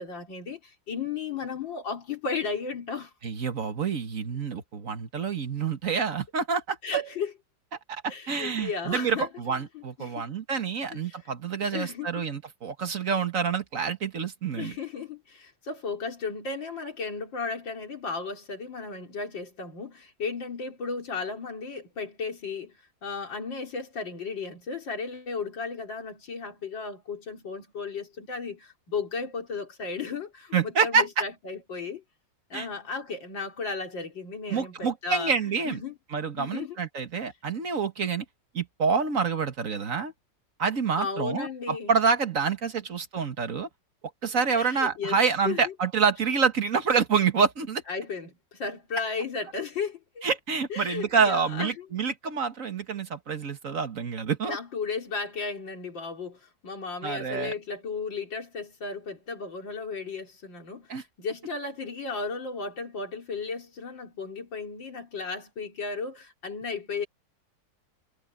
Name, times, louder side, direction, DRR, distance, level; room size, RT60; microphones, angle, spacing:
voice 1, 0.0-3.1 6.8-7.3 8.1-9.3 9.7-10.3 11.1-11.2 11.7-12.1 14.6-32.0 32.5-35.9 36.4-36.8 41.0-41.9 44.5-45.2 45.4-45.7 47.9-50.2 50.7-51.9 54.4-67.1, left 4 dB, 90° left, 3.9 m, -34 dB
voice 2, 3.2-6.8 7.9-8.0 8.3-14.8 30.5-31.1 32.5-32.7 34.5-35.8 36.1-38.2 38.5-40.1 40.6-43.7 44.2-47.8 50.2-54.6 57.0-57.5 60.9-61.0, right 5 dB, 45° right, 1.9 m, -27 dB
omnidirectional pair, 2.0 m